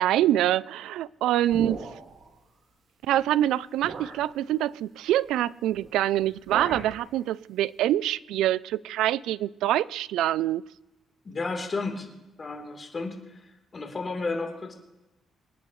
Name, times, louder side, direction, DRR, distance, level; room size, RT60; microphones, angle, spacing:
voice 1, 0.0-1.9 3.1-10.6, right 13 dB, 90° right, 20 dB, 0.4 m, -25 dB
sound 1, 1.5-2.3 3.2-3.3 3.8-4.3 5.7-5.9 6.2-7.0, right 4 dB, 55° right, 2.8 m, -37 dB
voice 2, 11.2-12.1 12.4-13.4 13.7-14.7, left 3 dB, 35° left, 2 dB, 3.5 m, -32 dB
27.5 x 9.9 x 3.2 m, 1.0 s
cardioid pair, 90°, 0 cm